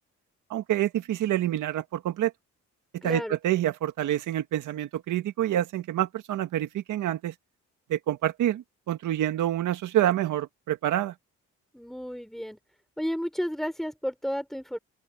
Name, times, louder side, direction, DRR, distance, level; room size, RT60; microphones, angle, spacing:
voice 1, 0.5-2.3 3.0-7.3 7.9-11.1, right 12 dB, 80° right, 1.8 m, -27 dB
voice 2, 3.0-3.4 11.7-12.6 13.0-14.8, equal, ahead, 5.9 m, -32 dB
open air
cardioid pair, 90°, 30 cm